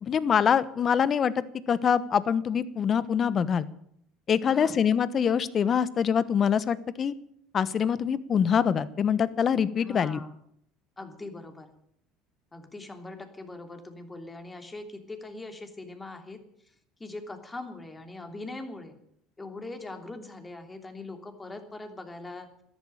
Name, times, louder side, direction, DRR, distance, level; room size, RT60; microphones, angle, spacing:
voice 1, 0.0-1.3 1.7-3.7 4.3-7.1 7.5-10.2, left 7 dB, 40° left, 17 dB, 1.1 m, -24 dB
voice 2, 9.8-10.4 11.0-11.7 12.5-16.4 17.0-19.0 19.4-22.5, left 2 dB, 15° left, 6 dB, 3.0 m, -41 dB
13.5 x 11.0 x 8.9 m, 0.69 s
supercardioid pair, 90°, 0 cm